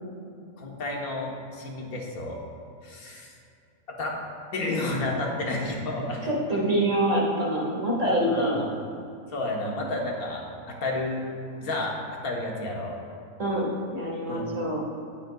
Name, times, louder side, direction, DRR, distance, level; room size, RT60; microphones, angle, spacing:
voice 1, 0.6-2.4 2.8-3.3 4.0-4.2 4.5-6.3 8.0-8.6 9.3-11.2 11.6-12.0 12.2-13.0 14.3-14.4, left 2 dB, 75° left, -1 dB, 1.7 m, -31 dB
voice 2, 6.2-8.7 13.4-14.8, right 1 dB, 60° right, -3 dB, 2.1 m, -26 dB
18.0 x 6.5 x 2.4 m, 2.6 s
omnidirectional pair, 1.5 m